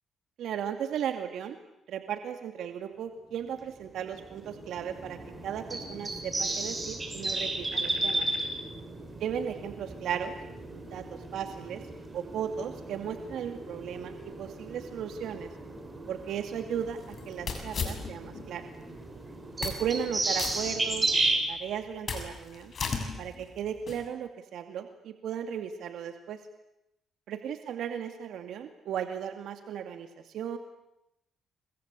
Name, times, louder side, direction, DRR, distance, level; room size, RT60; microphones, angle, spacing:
voice 1, 0.4-1.6 1.9-8.3 9.2-10.3 10.9-11.8 12.1-15.5 16.1-17.0 17.3-18.6 19.6-21.1 21.5-22.7 23.2-26.4 27.3-30.6, right 8 dB, 75° right, 7 dB, 2.4 m, -36 dB
sound 1, 3.6-21.4, right 2 dB, 20° right, 6.8 m, -34 dB
sound 2, 16.2-18.5 18.9-19.0 19.4-20.1 20.3-21.3 21.7-24.1, left 5 dB, 45° left, 6.9 m, -37 dB
29.5 x 24.0 x 8.4 m, 0.85 s
cardioid pair, 90°, 0 cm